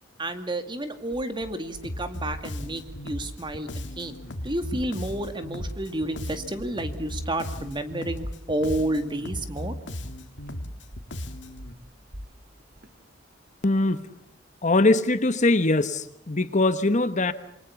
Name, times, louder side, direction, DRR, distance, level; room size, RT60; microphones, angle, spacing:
voice 1, 0.2-4.2 4.4-9.7, right 1 dB, 25° right, 9 dB, 2.2 m, -30 dB
sound 1, 0.9-14.0, equal, 55° right, 2.7 m, -45 dB
Bass guitar, 1.8-11.7, left 1 dB, 70° left, 2.2 m, -36 dB
voice 2, 13.6-14.0 14.6-17.3, left 2 dB, 40° left, 12 dB, 1.2 m, -22 dB
28.0 x 23.5 x 7.2 m, 0.71 s
head